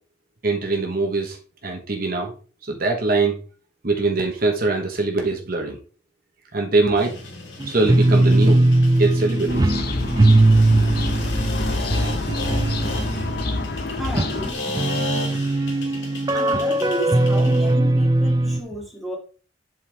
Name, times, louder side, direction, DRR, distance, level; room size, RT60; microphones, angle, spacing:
voice 1, 0.4-1.4 1.6-2.3 2.7-3.4 3.8-5.8 6.5-7.1 7.7-8.6 9.0-9.7 13.9-14.0, right 3 dB, 50° right, 1.2 m, -22 dB
sound 1, 6.9-17.7, left 3 dB, 85° left, 2.9 m, -35 dB
sound 2, 7.6-18.6, right 2 dB, 20° right, 0.4 m, -19 dB
sound 3, 9.5-14.5, left 2 dB, 60° left, 0.8 m, -27 dB
voice 2, 12.5-12.9 14.0-14.7 16.3-19.2, equal, ahead, 2.5 m, -32 dB
7.8 x 5.5 x 3.4 m
head